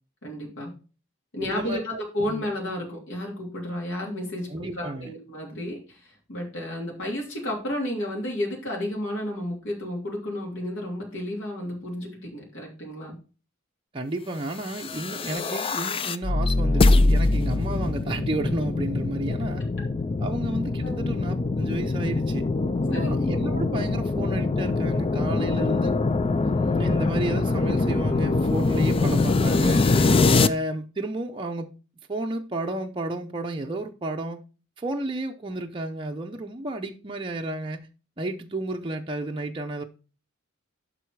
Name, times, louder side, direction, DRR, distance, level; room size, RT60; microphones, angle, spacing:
voice 1, 0.2-0.7 1.3-13.1 20.8-21.0 22.9-23.3 26.4-26.7, left 1 dB, 65° left, 2.9 m, -32 dB
voice 2, 1.5-2.0 2.3-2.5 4.5-5.1 13.9-19.6 20.2-22.4 22.9-26.0 26.5-29.8 30.4-31.7 32.1-34.4 34.8-37.9 38.2-39.8, right 2 dB, 25° right, 0.6 m, -32 dB
sound 1, 14.7-30.5, left 3 dB, 25° left, 0.4 m, -23 dB
12.0 x 4.1 x 4.6 m
head